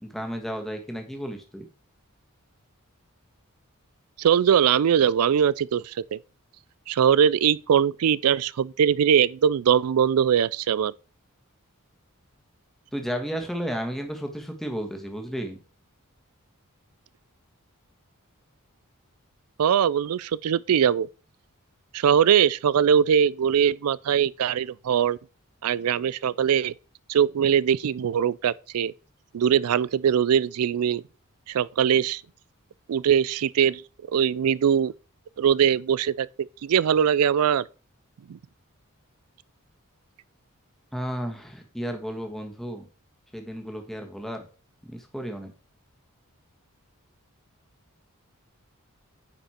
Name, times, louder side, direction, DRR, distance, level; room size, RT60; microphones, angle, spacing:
voice 1, 0.0-1.6 12.9-15.6 40.9-42.9 43.3-44.5 44.8-45.5, equal, ahead, 1.5 m, -33 dB
voice 2, 4.2-6.2 6.9-10.9 19.6-21.1 21.9-25.2 25.6-26.7 27.1-28.9 29.3-31.0 31.5-32.2 32.9-33.8 34.1-34.9 35.4-37.6 38.3-38.4, right 8 dB, 75° right, 0.4 m, -21 dB
9.6 x 5.1 x 4.4 m
head